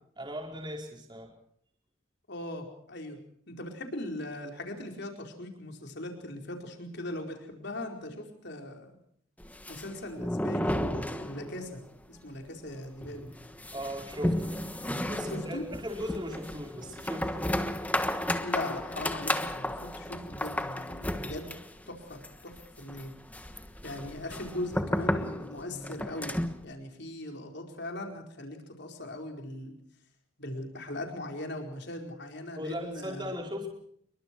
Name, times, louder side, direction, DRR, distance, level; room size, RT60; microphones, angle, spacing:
voice 1, 0.2-1.3 13.7-14.5 15.1-17.6 32.6-33.7, equal, 20° right, 1 dB, 4.6 m, -38 dB
voice 2, 2.3-3.2 3.5-8.9 9.7-11.8 12.1-13.3 15.2-15.6 18.4-21.5 21.9-23.1 23.8-29.7 30.4-33.4, left 1 dB, 55° left, 3 dB, 4.6 m, -39 dB
sound 1, 9.4-11.8 12.0-12.1 12.5-12.6 13.0-26.6, left 1 dB, 5° left, 1.3 m, -33 dB
28.0 x 23.0 x 4.6 m, 0.65 s
head